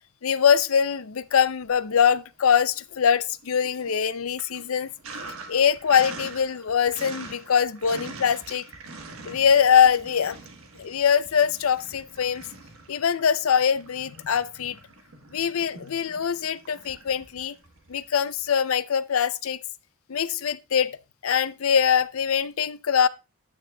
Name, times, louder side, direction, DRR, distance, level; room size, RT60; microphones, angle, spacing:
voice 1, 0.2-4.9 5.5-8.6 9.2-10.4 10.7-12.4 12.9-14.8 15.3-17.5 17.9-19.6 20.1-21.0 21.2-23.1, left 7 dB, 75° left, 0.5 m, -23 dB
Sink (filling or washing), 1.2-2.1 2.4-18.5, right 3 dB, 80° right, 1.2 m, -44 dB
9.2 x 8.7 x 2.2 m
head